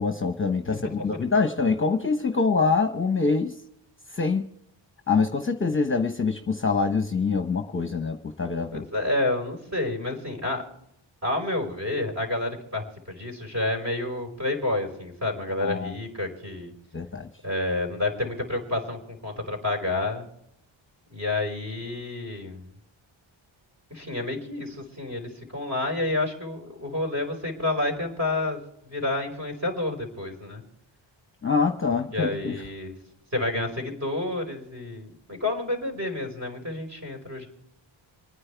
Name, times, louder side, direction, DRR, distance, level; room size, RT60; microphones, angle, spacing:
voice 1, 0.0-3.5 4.1-4.4 5.1-8.9 15.6-15.9 16.9-17.3 31.4-32.5, left 4 dB, 25° left, 6 dB, 1.0 m, -25 dB
voice 2, 0.7-1.2 8.7-10.6 11.2-16.7 17.4-20.3 21.1-22.7 23.9-30.6 32.1-32.9 33.3-37.5, left 2 dB, 35° right, -1 dB, 5.0 m, -29 dB
27.5 x 9.7 x 3.5 m, 0.77 s
wide cardioid pair, 95°, 48 cm